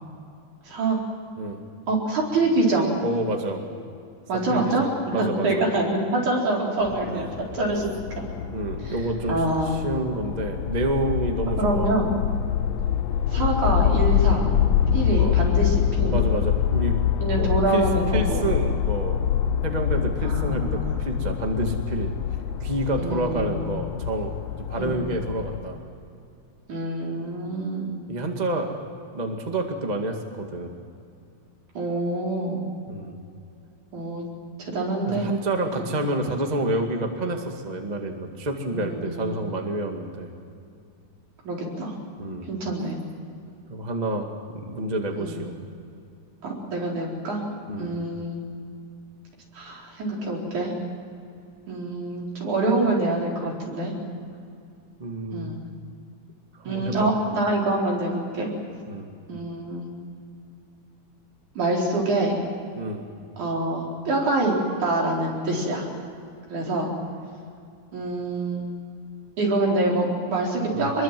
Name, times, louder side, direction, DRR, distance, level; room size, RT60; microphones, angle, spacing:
voice 1, 0.6-1.0 1.9-2.9 4.3-7.3 7.5-8.3 8.9-9.0 9.3-9.8 11.6-12.1 13.3-14.5 14.9-16.2 17.2-18.5 20.2-21.1 23.0-23.7 24.8-25.0 26.7-27.9 31.8-32.6 33.9-34.3 34.6-35.3 35.7-35.9 38.7-39.5 41.4-41.9 42.5-43.0 45.2-45.4 46.4-47.4 47.8-48.5 49.5-50.7 51.7-53.9 55.3-55.7 56.7-58.5 59.3-59.9 61.6-62.4 63.4-65.9 66.5-66.9 67.9-68.7 69.4-71.0, right 2 dB, 65° right, -2 dB, 5.7 m, -25 dB
voice 2, 3.0-3.6 4.5-5.6 7.1-7.2 8.5-11.9 15.2-15.4 16.1-16.9 17.4-17.9 18.1-19.2 19.6-22.1 22.6-25.8 28.1-28.9 29.1-30.7 32.9-33.2 35.1-40.3 42.2-42.5 43.7-44.3 44.6-45.5 47.7-47.9 55.0-55.5 56.6-57.1 58.9-59.1 62.8-63.0 70.7-70.9, right 2 dB, 15° right, 3 dB, 1.5 m, -28 dB
sound 1, 6.8-25.6, left 9 dB, 70° left, 1.6 m, -25 dB
25.0 x 22.0 x 7.7 m, 2.5 s
omnidirectional pair, 3.7 m